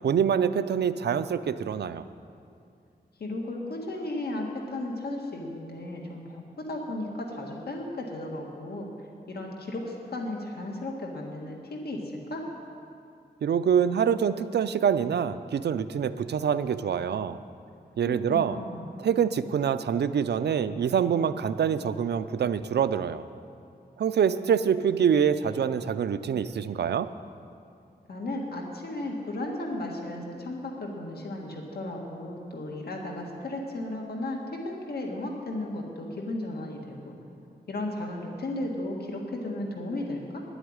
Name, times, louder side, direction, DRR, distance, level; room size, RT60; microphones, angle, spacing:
voice 1, 0.0-2.0 13.4-17.4 18.0-18.6 19.0-23.2 24.0-27.1, right 7 dB, 80° right, 12 dB, 0.5 m, -25 dB
voice 2, 3.2-8.9 9.3-12.5 18.3-18.9 28.1-37.2 37.7-40.4, left 1 dB, 65° left, 0 dB, 1.7 m, -35 dB
11.0 x 8.1 x 9.7 m, 2.4 s
wide cardioid pair, 120°, 17 cm